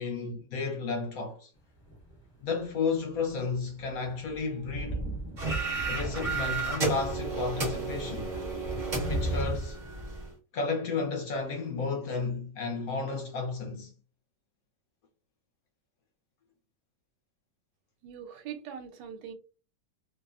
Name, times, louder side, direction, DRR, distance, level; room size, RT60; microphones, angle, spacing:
voice 1, 0.0-1.5 2.4-5.0 5.9-8.3 9.1-9.8 10.5-13.9, left 4 dB, 70° left, 0.9 m, -32 dB
sound 1, 1.8-2.3 3.2-9.6, right 1 dB, 20° left, 0.7 m, -37 dB
sound 2, 5.4-10.3, right 3 dB, 40° right, 0.7 m, -32 dB
voice 2, 18.0-19.3, right 8 dB, 80° right, 1.3 m, -42 dB
3.1 x 2.0 x 2.4 m
omnidirectional pair, 1.9 m